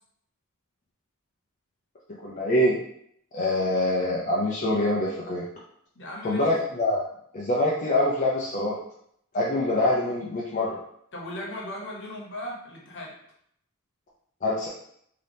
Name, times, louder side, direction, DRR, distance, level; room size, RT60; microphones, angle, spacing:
voice 1, 2.2-2.8 3.3-5.5 6.2-7.0 7.3-8.8 9.3-10.8 14.4-14.7, left 1 dB, 35° left, -5 dB, 0.6 m, -24 dB
voice 2, 5.9-6.5 11.1-13.1, left 1 dB, 60° left, -2 dB, 1.1 m, -37 dB
3.8 x 2.9 x 3.4 m, 0.71 s
head